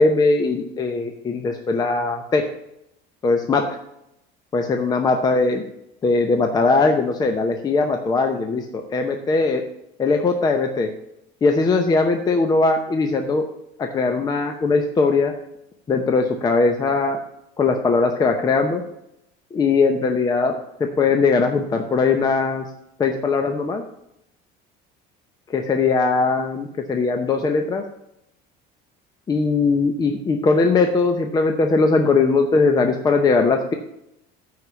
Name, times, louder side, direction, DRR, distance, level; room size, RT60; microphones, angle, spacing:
voice 1, 0.0-2.4 3.2-3.6 4.5-5.6 6.0-9.6 10.0-10.9 11.4-13.4 13.8-15.3 15.9-17.2 17.6-18.8 19.5-20.5 20.8-22.7 23.0-23.8 25.5-27.8 29.3-33.7, left 3 dB, 20° left, 5 dB, 0.7 m, -20 dB
9.9 x 4.8 x 6.9 m, 0.81 s
cardioid pair, 165°, 21 cm